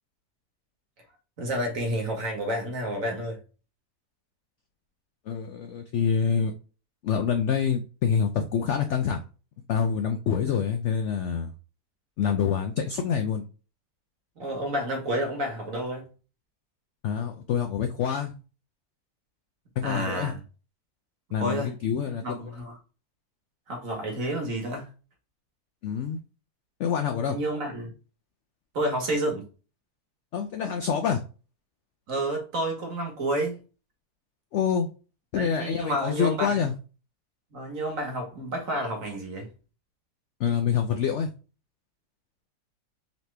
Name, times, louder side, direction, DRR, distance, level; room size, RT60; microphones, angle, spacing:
voice 1, 1.4-3.4 14.4-16.1 19.8-20.4 21.4-21.7 22.2-22.7 23.7-24.9 27.3-27.9 28.7-29.5 32.1-33.6 35.3-36.6 37.5-39.5, right 1 dB, 55° right, 1.6 m, -30 dB
voice 2, 5.3-6.5 7.0-9.2 9.7-11.5 12.2-13.5 17.0-18.3 19.8-20.3 21.3-22.5 25.8-26.2 26.8-27.4 30.3-31.2 34.5-34.9 35.3-36.7 40.4-41.3, left 7 dB, 85° left, 0.6 m, -26 dB
4.1 x 3.0 x 3.3 m
omnidirectional pair, 1.8 m